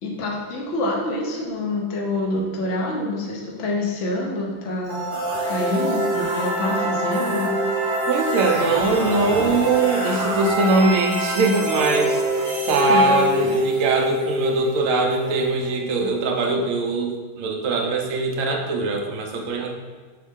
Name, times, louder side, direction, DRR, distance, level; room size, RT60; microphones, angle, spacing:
voice 1, 0.0-5.1 5.5-7.5 12.9-13.1, left 2 dB, 50° left, -2 dB, 0.9 m, -26 dB
sound 1, 4.8-16.7, right 1 dB, 35° right, 2.0 m, -25 dB
voice 2, 8.1-12.2 12.7-19.7, right 3 dB, 70° right, 1 dB, 0.7 m, -21 dB
6.5 x 4.1 x 3.6 m, 1.4 s
omnidirectional pair, 2.2 m